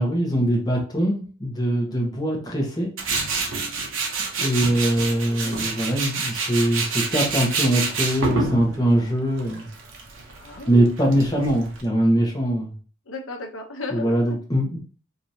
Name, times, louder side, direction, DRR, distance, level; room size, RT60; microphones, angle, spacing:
voice 1, 0.0-2.9 4.4-9.7 10.7-12.8 13.9-14.8, right 1 dB, 20° left, -2 dB, 1.0 m, -22 dB
Tools, 3.0-11.8, right 4 dB, 75° right, 0.8 m, -28 dB
voice 2, 10.3-10.9 13.1-14.4, left 3 dB, 80° left, 3 dB, 0.8 m, -35 dB
4.7 x 2.7 x 2.8 m, 0.37 s
head